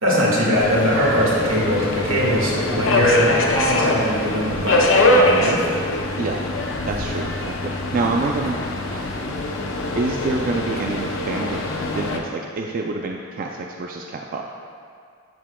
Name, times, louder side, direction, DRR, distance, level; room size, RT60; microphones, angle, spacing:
voice 1, 0.0-5.7, equal, 85° right, -5 dB, 1.8 m, -21 dB
Subway metro underground, 0.6-12.2, left 2 dB, 70° left, 0.7 m, -23 dB
voice 2, 6.9-8.6 8.9-9.1 9.9-11.6 11.9-14.4, right 3 dB, 45° right, 1 dB, 0.4 m, -27 dB
10.5 x 5.8 x 2.2 m, 2.2 s
head